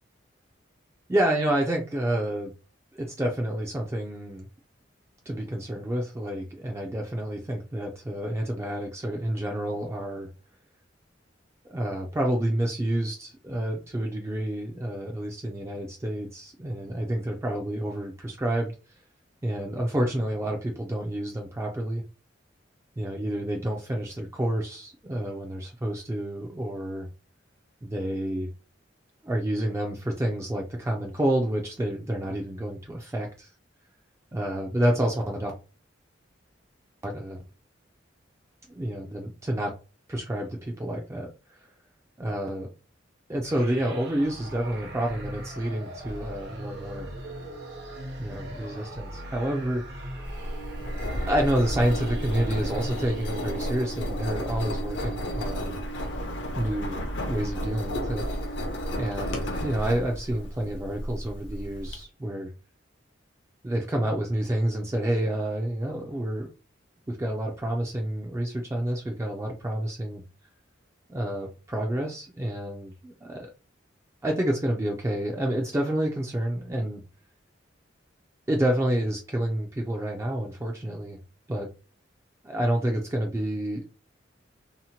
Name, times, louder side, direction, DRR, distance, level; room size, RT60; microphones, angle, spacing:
voice 1, 1.1-2.5 2.9-4.5 5.3-10.3 11.7-18.7 19.4-22.0 23.0-27.1 27.8-28.5 29.2-33.5 34.3-35.5 37.0-37.4 38.8-39.8 40.1-41.6 42.2-42.7 43.3-47.1 48.2-50.2 51.3-55.8 56.6-57.0 57.3-58.3 59.0-62.5 63.6-66.5 67.1-70.2 71.1-73.5 74.2-77.0 78.5-81.2 81.5-81.7 82.4-83.8, right 1 dB, 15° right, 0.3 m, -29 dB
sound 1, 43.4-54.0, right 1 dB, 60° right, 0.8 m, -40 dB
Engine, 50.3-62.0, equal, 70° left, 0.6 m, -32 dB
2.8 x 2.1 x 2.7 m
head